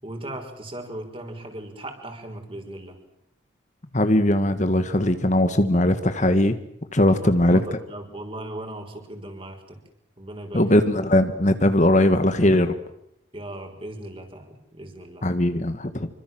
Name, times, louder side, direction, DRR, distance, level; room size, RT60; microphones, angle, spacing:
voice 1, 0.0-3.0 7.1-9.8 10.2-10.7 13.3-15.3, right 1 dB, 25° right, 4 dB, 5.8 m, -38 dB
voice 2, 3.9-6.5 6.9-7.6 10.5-12.7 15.2-16.1, left 1 dB, 40° left, 10 dB, 1.6 m, -19 dB
27.5 x 25.0 x 7.7 m, 0.79 s
head